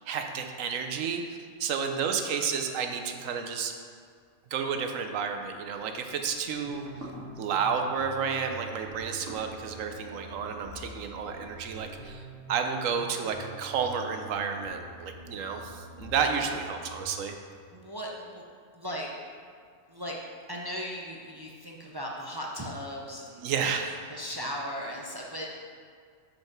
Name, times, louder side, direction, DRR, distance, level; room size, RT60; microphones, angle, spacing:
voice 1, 0.1-3.7 4.5-6.8 7.4-12.2 12.5-17.3 23.4-24.0, right 6 dB, 80° right, 5 dB, 1.1 m, -31 dB
sound 1, 5.4-12.4, right 1 dB, 50° right, 1.6 m, -50 dB
sound 2, 6.6-17.3, right 3 dB, 40° left, 1.5 m, -46 dB
voice 2, 17.7-18.4 18.7-19.1 19.9-20.2 20.5-23.5 24.1-25.5, equal, 30° right, -2 dB, 0.4 m, -37 dB
5.8 x 5.4 x 5.9 m, 2.1 s
omnidirectional pair, 1.3 m